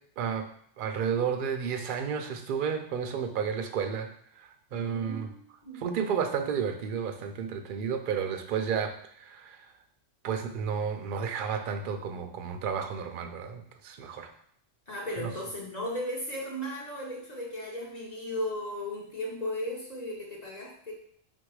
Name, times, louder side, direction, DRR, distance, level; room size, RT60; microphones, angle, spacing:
voice 1, 0.2-0.5 0.8-4.1 4.4-5.3 5.8-9.6 10.2-14.3, right 7 dB, 60° right, 6 dB, 0.5 m, -32 dB
voice 2, 4.7-5.9 14.9-20.9, left 1 dB, 40° left, -3 dB, 0.8 m, -36 dB
3.8 x 2.6 x 4.6 m, 0.66 s
omnidirectional pair, 1.3 m